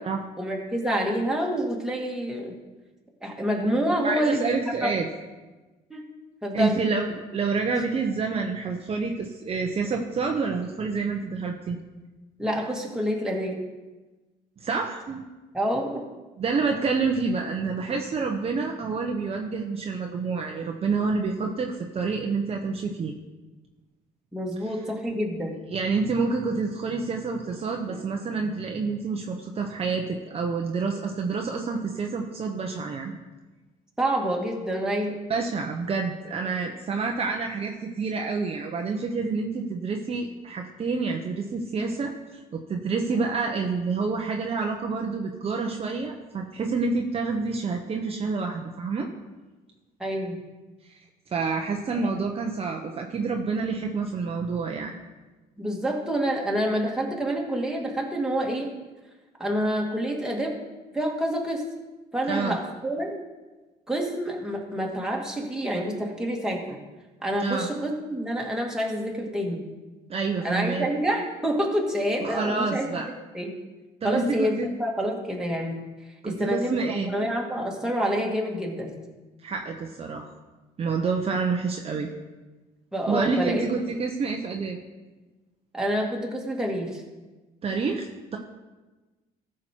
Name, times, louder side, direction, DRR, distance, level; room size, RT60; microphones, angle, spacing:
voice 1, 0.4-2.5 3.2-4.6 4.8-5.0 5.9-6.1 6.4-6.8 12.4-13.6 15.5-16.0 24.3-25.6 34.0-35.2 50.0-50.4 51.9-52.1 55.6-58.7 59.4-60.6 60.9-61.6 62.1-63.2 63.9-66.8 67.2-69.6 70.4-72.9 73.3-73.5 74.0-75.8 76.2-78.9 82.9-83.6 85.7-87.0, equal, 5° right, -2 dB, 2.1 m, -27 dB
voice 2, 4.0-5.0 6.5-11.8 14.6-15.2 16.4-23.1 24.6-24.7 25.7-33.2 35.3-49.1 50.9-51.0 51.3-55.0 62.3-62.6 67.4-67.7 70.1-70.9 72.2-73.1 74.0-74.7 76.2-77.1 79.4-80.3 80.8-82.1 83.1-84.8 87.6-88.4, right 4 dB, 35° right, 2 dB, 1.0 m, -28 dB
15.0 x 6.3 x 4.6 m, 1.2 s
cardioid pair, 110°, 17 cm